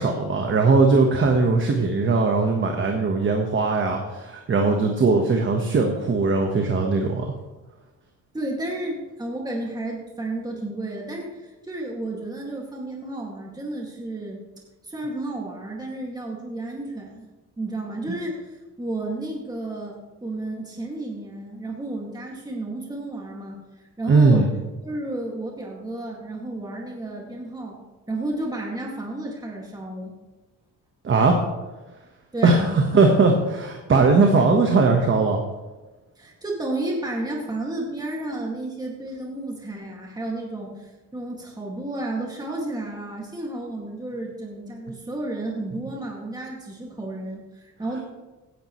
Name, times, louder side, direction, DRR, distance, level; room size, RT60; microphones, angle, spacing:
voice 1, 0.0-7.2 24.1-24.5 31.0-31.4 32.4-35.4, right 3 dB, 35° right, 3 dB, 1.3 m, -19 dB
voice 2, 8.3-14.4 14.8-17.3 17.6-23.6 24.0-24.5 24.8-27.8 28.1-30.1 32.3-32.9 36.2-48.0, right 2 dB, 10° right, -1 dB, 2.1 m, -32 dB
16.0 x 10.0 x 3.1 m, 1.1 s
cardioid pair, 120°, 33 cm